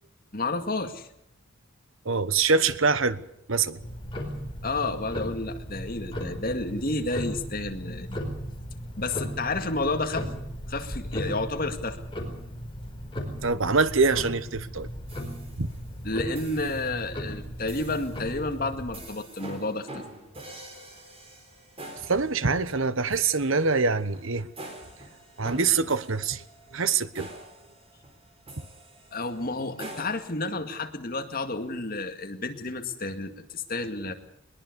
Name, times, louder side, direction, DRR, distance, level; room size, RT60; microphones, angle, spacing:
voice 1, 0.3-1.1 4.6-8.2 9.0-10.3 10.7-12.0 16.0-20.0 29.1-34.1, left 2 dB, 40° left, 2.2 m, -31 dB
voice 2, 2.0-3.2 3.5-3.8 13.4-14.9 15.6-15.7 22.0-24.5 25.4-26.4 26.7-27.3, right 4 dB, 60° right, 1.1 m, -24 dB
Tick-tock, 3.8-19.0, equal, 25° left, 4.7 m, -36 dB
sound 1, 15.1-15.9 16.3-17.0 17.7-18.2 18.9-30.0, right 1 dB, 25° right, 4.4 m, -46 dB
21.5 x 21.5 x 6.9 m
head